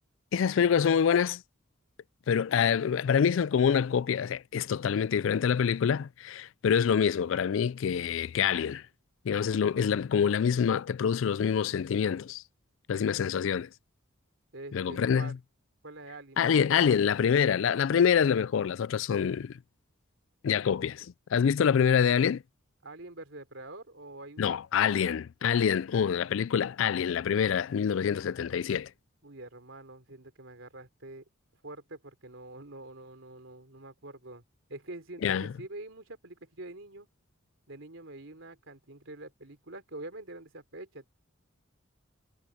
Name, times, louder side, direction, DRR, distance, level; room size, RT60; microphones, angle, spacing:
voice 1, 0.3-1.4 2.3-8.8 9.3-12.4 12.9-13.7 14.7-15.3 16.4-19.5 20.4-22.4 24.4-28.9 35.2-35.5, left 7 dB, 65° left, 0.3 m, -26 dB
voice 2, 14.5-15.3 15.8-16.9 22.8-25.2 29.2-31.2 31.6-34.4 34.7-37.1 37.7-41.1, right 2 dB, 65° right, 4.0 m, -46 dB
head